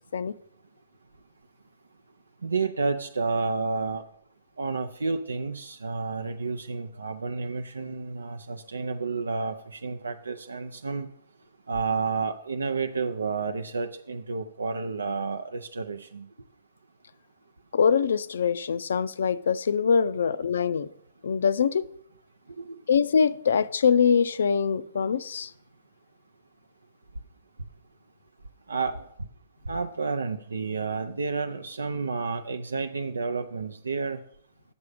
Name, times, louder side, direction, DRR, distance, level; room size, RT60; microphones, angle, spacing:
voice 1, 2.4-4.1 4.6-11.1 11.7-16.3 22.6-22.8 28.7-29.1 29.7-34.2, right 4 dB, 90° right, 0.5 m, -30 dB
voice 2, 17.7-20.9 21.2-21.9 22.9-25.5, left 6 dB, 75° left, 0.4 m, -23 dB
7.1 x 6.7 x 4.9 m
hypercardioid pair, 125°, 0 cm